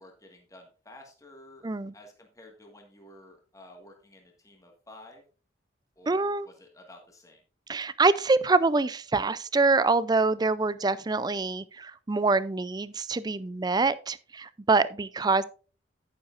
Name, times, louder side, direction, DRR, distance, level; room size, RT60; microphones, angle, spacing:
voice 1, 0.0-5.2 5.9-7.4, left 1 dB, 20° left, 1.7 m, -52 dB
voice 2, 1.6-1.9 6.1-6.5 7.7-15.4, right 3 dB, 20° right, 0.4 m, -25 dB
10.0 x 9.7 x 2.5 m
head